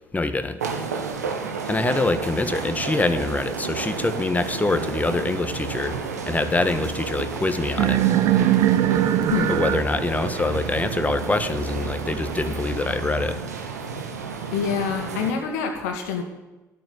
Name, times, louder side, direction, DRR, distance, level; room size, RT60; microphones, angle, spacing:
voice 1, 0.1-0.6 1.7-5.9 6.2-8.0 9.5-13.4, left 2 dB, 15° left, 10 dB, 1.6 m, -24 dB
sound 1, 0.6-15.3, right 5 dB, 80° right, 1.5 m, -32 dB
sound 2, 7.8-12.8, right 12 dB, 60° right, 0.9 m, -23 dB
voice 2, 14.5-16.2, left 6 dB, 70° left, 4 dB, 2.4 m, -26 dB
13.5 x 9.2 x 9.5 m, 1.1 s
figure-of-eight pair, 50°, 9 cm